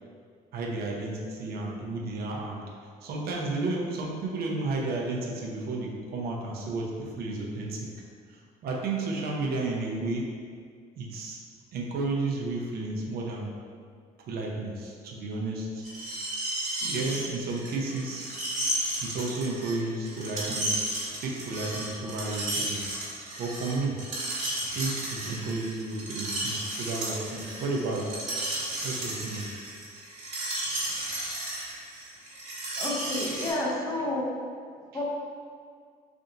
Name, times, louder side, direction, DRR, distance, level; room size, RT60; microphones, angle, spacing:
voice 1, 0.5-2.6 3.0-7.9 8.3-10.3 11.0-11.4 11.7-13.5 14.3-15.9 16.8-18.3 19.0-23.0 23.4-24.0 24.7-28.1 28.8-29.5 34.9-35.0, right 2 dB, 65° right, -2 dB, 0.7 m, -32 dB
Screech, 15.8-33.5, right 1 dB, 45° right, 1.3 m, -33 dB
voice 2, 32.8-34.3 34.9-35.0, left 1 dB, 20° left, -3 dB, 0.7 m, -30 dB
3.4 x 2.6 x 3.9 m, 2.1 s
cardioid pair, 110°, 17 cm